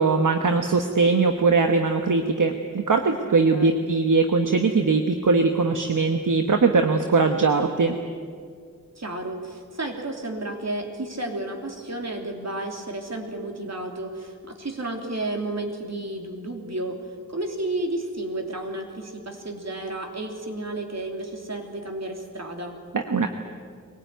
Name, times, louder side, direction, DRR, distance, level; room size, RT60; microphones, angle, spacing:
voice 1, 0.0-7.9 22.9-23.3, right 4 dB, 70° right, 5 dB, 1.2 m, -21 dB
voice 2, 3.2-3.8 8.9-17.0 17.3-22.8, right 2 dB, 55° right, 3 dB, 3.2 m, -32 dB
22.0 x 18.0 x 9.2 m, 2.1 s
wide cardioid pair, 60°, 32 cm